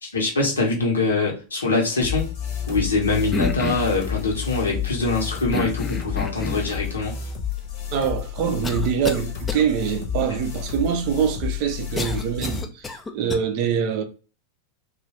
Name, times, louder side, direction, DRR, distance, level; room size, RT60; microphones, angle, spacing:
voice 1, 0.0-2.3 2.7-7.2, left 3 dB, 75° left, 0.8 m, -23 dB
sound 1, 2.0-12.6, left 9 dB, 45° left, 0.9 m, -30 dB
sound 2, 3.3-4.0 5.5-6.7 7.5-7.6 8.6-9.2 9.5-9.6 12.0-13.4, left 4 dB, 15° left, 0.4 m, -28 dB
voice 2, 7.9-14.0, right 8 dB, 45° right, 0.5 m, -24 dB
3.0 x 2.2 x 2.8 m
figure-of-eight pair, 90°, 0 cm